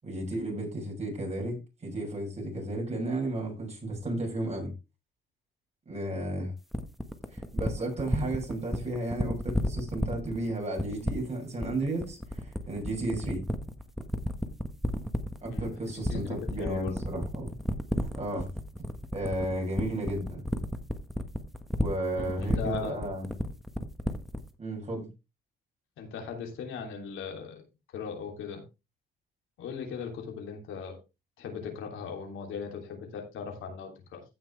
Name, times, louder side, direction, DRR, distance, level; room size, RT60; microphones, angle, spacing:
voice 1, 0.0-4.7 5.8-6.5 7.3-13.4 15.4-17.5 18.1-18.5 19.1-20.4 21.8-23.3 24.6-25.1, right 1 dB, 35° right, 6.7 m, -33 dB
sound 1, 6.7-24.5, equal, ahead, 1.4 m, -31 dB
voice 2, 15.5-16.9 22.2-23.0 26.0-27.6 27.9-28.6 29.6-31.0 31.4-34.2, left 6 dB, 85° left, 3.1 m, -38 dB
16.0 x 5.9 x 3.3 m
cardioid pair, 90°, 20 cm